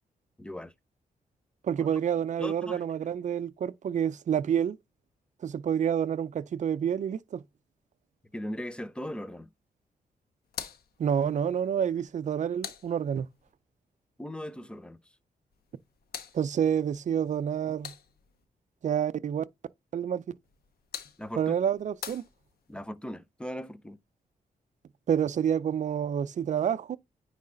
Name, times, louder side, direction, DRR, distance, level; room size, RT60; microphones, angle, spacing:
voice 1, 0.4-0.7 1.8-1.9 2.4-2.9 8.3-9.5 14.2-15.0 21.2-21.5 22.7-24.0, left 1 dB, 5° left, 0.5 m, -38 dB
voice 2, 1.6-4.8 5.4-7.4 11.0-13.3 16.3-17.9 18.8-19.4 19.9-20.2 21.4-22.2 25.1-27.0, right 8 dB, 50° right, 0.5 m, -28 dB
sound 1, 10.4-13.5 15.5-18.5 20.4-22.9, left 8 dB, 85° left, 1.1 m, -46 dB
9.5 x 3.2 x 3.8 m
wide cardioid pair, 130°, 16 cm